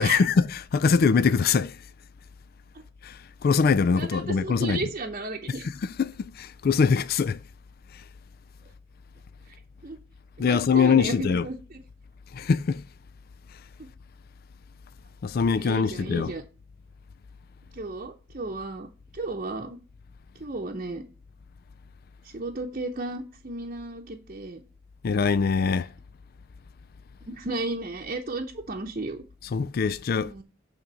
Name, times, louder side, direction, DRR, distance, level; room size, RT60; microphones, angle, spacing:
voice 1, 0.0-1.8 3.0-4.9 5.8-7.4 7.9-8.0 10.4-11.5 12.3-12.8 15.2-16.3 25.0-25.9 29.5-30.3, left 5 dB, 50° left, 0.4 m, -23 dB
voice 2, 3.9-5.7 9.8-10.0 10.4-11.8 13.8-13.9 15.5-16.4 17.7-18.9 19.1-19.8 20.4-21.1 22.2-24.6 27.2-29.2 30.2-30.4, right 2 dB, 40° right, 0.8 m, -34 dB
8.8 x 3.8 x 6.9 m
head